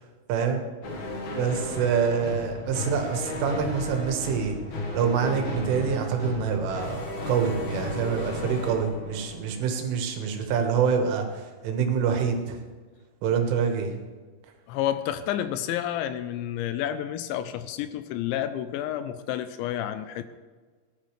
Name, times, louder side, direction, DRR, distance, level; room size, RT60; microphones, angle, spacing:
voice 1, 0.3-0.6 1.4-4.6 4.9-12.6 13.2-13.9, right 6 dB, 85° right, 4 dB, 3.9 m, -26 dB
sound 1, 0.8-10.3, left 1 dB, 60° left, 2.0 m, -34 dB
voice 2, 14.7-20.2, left 11 dB, 85° left, 11 dB, 2.8 m, -30 dB
17.5 x 11.0 x 3.3 m, 1.4 s
omnidirectional pair, 5.5 m